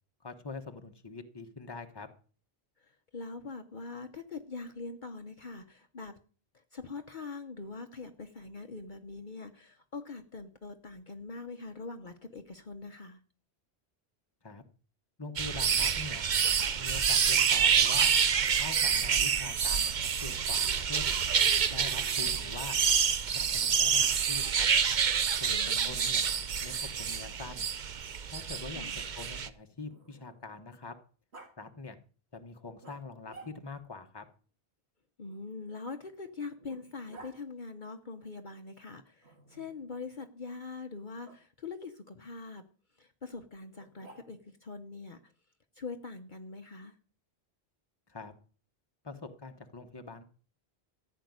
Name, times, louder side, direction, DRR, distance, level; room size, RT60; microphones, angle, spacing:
voice 1, 0.2-2.1 14.4-14.6 15.2-16.2 16.8-18.1 18.5-21.1 21.7-22.8 23.3-24.7 25.4-26.2 26.6-27.7 28.3-28.8 29.1-30.9 31.6-32.0 32.3-34.2 48.1-48.3 49.0-50.2, left 3 dB, 25° left, 6 dB, 1.3 m, -44 dB
voice 2, 2.8-6.2 6.5-13.2 25.5-26.2 28.7-29.0 35.2-42.6 43.0-45.3 45.7-47.0, left 4 dB, 50° left, 6 dB, 1.1 m, -43 dB
sound 1, 15.4-29.5, right 7 dB, 50° right, 0.8 m, -27 dB
Growling, 29.4-30.6 31.3-31.5 32.8-33.9 35.2-37.4 39.2-39.9 41.2-41.4 43.7-44.6, right 3 dB, 90° right, 3.6 m, -56 dB
15.0 x 5.9 x 9.6 m, 0.41 s
omnidirectional pair, 1.1 m